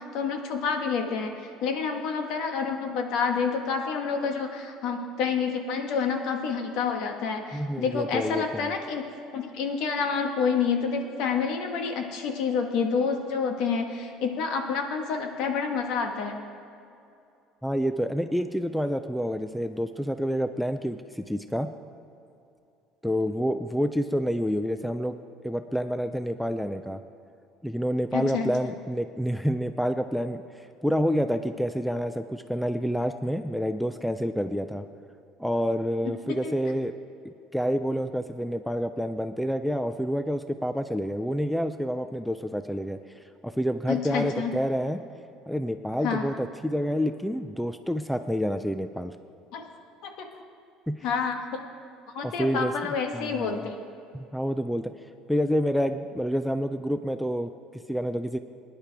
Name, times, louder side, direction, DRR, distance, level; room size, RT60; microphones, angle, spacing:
voice 1, 0.0-16.3 28.1-28.7 36.3-36.5 43.9-44.5 46.0-46.3 49.5-49.7 50.0-50.3 51.0-51.7 52.1-53.8, left 5 dB, 60° left, 4 dB, 1.4 m, -28 dB
voice 2, 7.5-8.7 17.6-21.7 23.0-25.2 25.4-27.0 27.6-34.8 35.4-36.9 37.5-45.0 45.5-49.1 50.9-51.0 52.2-52.7 53.1-53.7 54.1-54.9 55.3-58.4, equal, ahead, 9 dB, 0.3 m, -28 dB
20.0 x 10.5 x 3.4 m, 2.6 s
cardioid pair, 160°, 0 cm